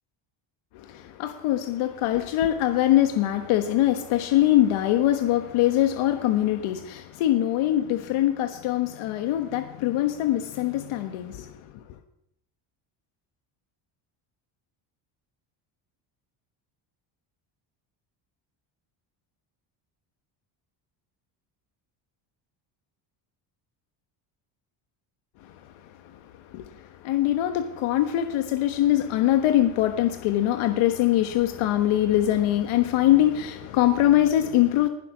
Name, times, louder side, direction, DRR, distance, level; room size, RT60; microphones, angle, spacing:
voice 1, 0.7-11.5 26.5-34.9, left 13 dB, 85° left, 1.4 m, -23 dB
20.5 x 11.0 x 6.1 m
cardioid pair, 175°, 47 cm